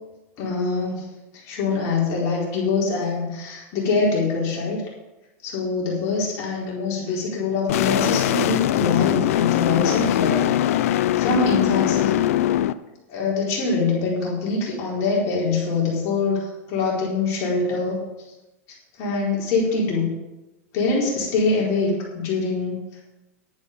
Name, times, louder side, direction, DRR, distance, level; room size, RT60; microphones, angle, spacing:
voice 1, 0.4-1.1 1.5-4.9 5.4-10.6 11.2-12.2 13.1-18.0 19.0-20.1 20.7-22.8, left 3 dB, 40° left, -5 dB, 4.3 m, -24 dB
sound 1, 7.7-12.7, left 12 dB, 75° left, 0.6 m, -21 dB
11.0 x 10.5 x 5.4 m, 1.0 s
supercardioid pair, 150°, 8 cm